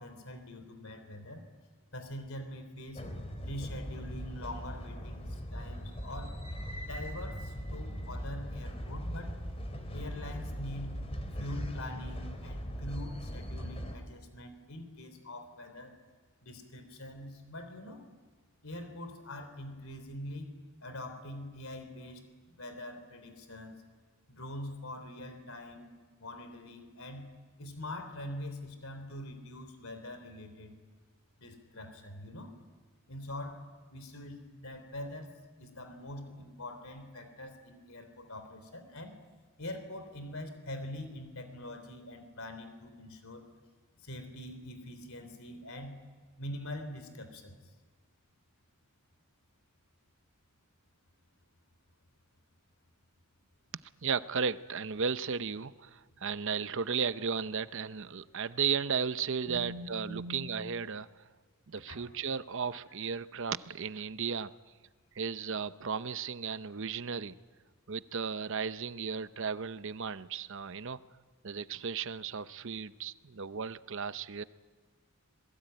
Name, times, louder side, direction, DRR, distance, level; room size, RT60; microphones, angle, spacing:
voice 1, 0.0-1.5 1.9-3.0 3.4-6.4 6.8-9.4 9.9-11.0 11.3-16.0 16.4-18.0 18.6-20.5 20.8-23.8 24.3-25.9 26.2-27.3 27.6-30.8 31.4-32.5 33.1-39.2 39.6-43.5 44.0-46.0 46.4-47.6 59.5-60.5 61.9-62.0, left 1 dB, 70° left, 9 dB, 3.5 m, -43 dB
sound 1, 3.0-14.0, equal, 25° left, 3.1 m, -40 dB
voice 2, 54.0-61.2 61.7-64.5 65.2-67.4 67.9-71.0 71.4-74.4, right 6 dB, 60° right, 14 dB, 0.7 m, -35 dB
27.0 x 21.5 x 9.1 m, 1.4 s
head